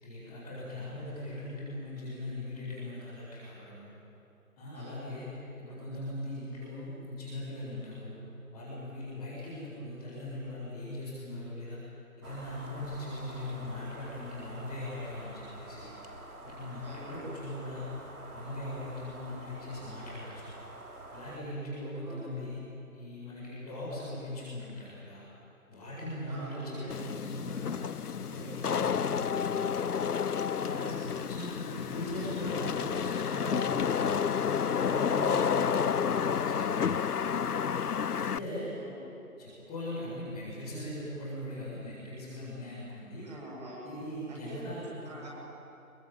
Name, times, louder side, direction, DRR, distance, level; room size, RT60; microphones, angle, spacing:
voice 1, 0.0-3.9 4.6-8.1 8.5-11.8 12.2-15.9 16.4-17.8 18.3-20.5 21.1-22.6 22.9-25.2 25.7-29.9 30.5-34.0 34.5-37.2 38.1-38.7 39.4-43.3 43.8-45.3, left 1 dB, 5° left, -15 dB, 1.5 m, -40 dB
voice 2, 4.7-5.2 16.8-17.4 21.9-22.4 26.3-26.9 35.1-35.6 38.8-39.1 43.2-43.9 44.3-45.3, equal, 30° right, -3 dB, 7.6 m, -45 dB
sound 1, 12.2-21.4, right 1 dB, 80° right, 3.2 m, -47 dB
Wind / Rain, 26.9-38.4, left 7 dB, 90° left, 0.6 m, -30 dB
23.5 x 23.5 x 9.1 m, 2.8 s
figure-of-eight pair, 165°, 44 cm